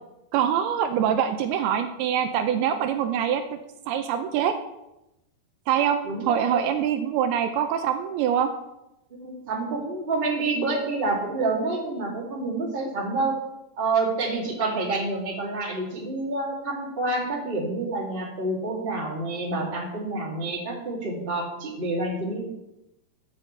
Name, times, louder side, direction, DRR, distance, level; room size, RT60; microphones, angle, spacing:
voice 1, 0.3-3.4 3.9-4.5 5.7-6.0 6.2-8.5, right 9 dB, 80° right, 7 dB, 2.5 m, -24 dB
voice 2, 6.0-6.7 9.2-13.3 13.8-22.4, right 3 dB, 20° right, -3 dB, 1.8 m, -28 dB
13.5 x 9.3 x 3.2 m, 0.91 s
omnidirectional pair, 4.6 m